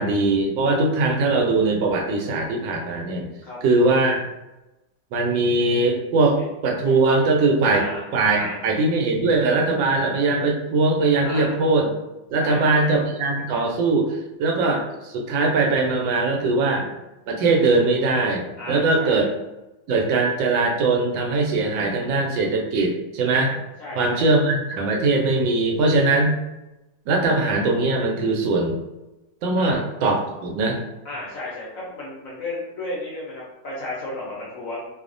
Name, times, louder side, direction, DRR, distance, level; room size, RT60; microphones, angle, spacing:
voice 1, 0.0-3.3 3.6-4.2 5.1-11.9 12.3-16.9 17.3-19.3 19.9-23.5 24.0-26.3 27.1-28.8 29.4-30.8, right 3 dB, 90° right, 1 dB, 1.3 m, -21 dB
voice 2, 7.7-8.1 8.3-8.6 11.2-11.5 12.4-12.9 18.6-19.3 23.8-24.2 29.6-29.8 31.0-34.9, left 2 dB, 65° left, -6 dB, 0.9 m, -34 dB
3.1 x 2.0 x 2.5 m, 0.97 s
omnidirectional pair, 2.0 m